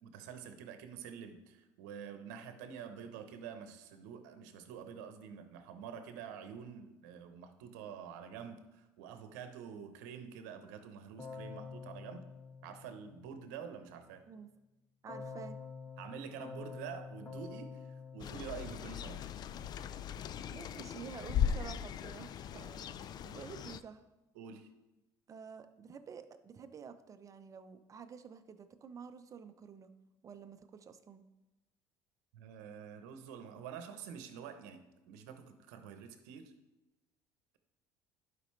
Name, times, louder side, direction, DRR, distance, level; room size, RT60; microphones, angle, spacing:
voice 1, 0.0-12.2 12.6-14.2 16.0-19.3 24.3-24.7 32.3-36.5, right 7 dB, 85° right, 8 dB, 0.9 m, -47 dB
Keyboard (musical), 11.2-13.5 15.1-19.4, left 5 dB, 20° left, 2.0 m, -48 dB
voice 2, 15.0-15.6 20.5-24.0 25.3-29.9 30.2-31.2, right 6 dB, 35° right, 9 dB, 0.7 m, -50 dB
sound 1, 18.2-23.8, left 9 dB, 50° left, 0.4 m, -38 dB
11.0 x 5.0 x 3.2 m, 0.99 s
supercardioid pair, 85°, 9 cm